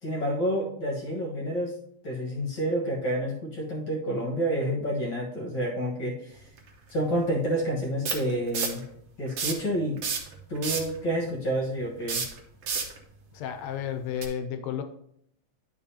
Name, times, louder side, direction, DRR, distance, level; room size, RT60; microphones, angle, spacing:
voice 1, 0.0-1.7 2.0-6.4 6.9-8.8 9.2-10.0 10.5-12.2, right 1 dB, 50° left, -3 dB, 1.8 m, -29 dB
sound 1, 6.6-6.7 8.1-8.8 9.3-9.7 10.0-11.0 12.0-13.0 14.2-14.3, right 5 dB, 60° right, 1.9 m, -29 dB
voice 2, 13.3-14.8, left 8 dB, 75° left, 8 dB, 1.8 m, -32 dB
10.5 x 5.4 x 2.8 m, 0.68 s
omnidirectional pair, 3.3 m